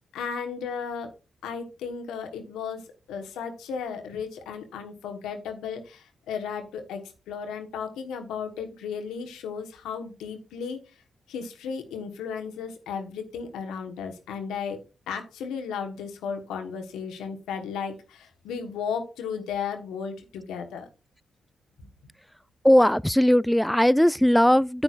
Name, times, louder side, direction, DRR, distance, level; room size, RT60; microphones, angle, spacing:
voice 1, 0.1-1.1 1.4-10.8 11.3-14.8 15.1-20.9, left 6 dB, 80° left, 1.3 m, -34 dB
voice 2, 22.6-24.8, equal, 5° left, 0.3 m, -19 dB
9.7 x 8.6 x 2.5 m
hypercardioid pair, 40°, 0 cm